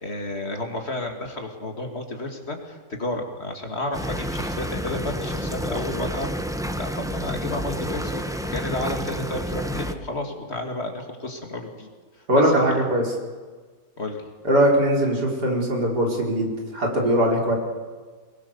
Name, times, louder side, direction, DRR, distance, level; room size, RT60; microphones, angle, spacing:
voice 1, 0.0-6.3 6.8-11.9 12.3-12.8 14.0-14.2, left 2 dB, 40° left, 3 dB, 2.8 m, -31 dB
sound 1, 3.9-9.9, equal, 5° right, 0.8 m, -29 dB
voice 2, 12.3-13.0 14.4-17.6, equal, 90° right, 0 dB, 4.9 m, -21 dB
24.0 x 21.5 x 7.1 m, 1.4 s
omnidirectional pair, 1.7 m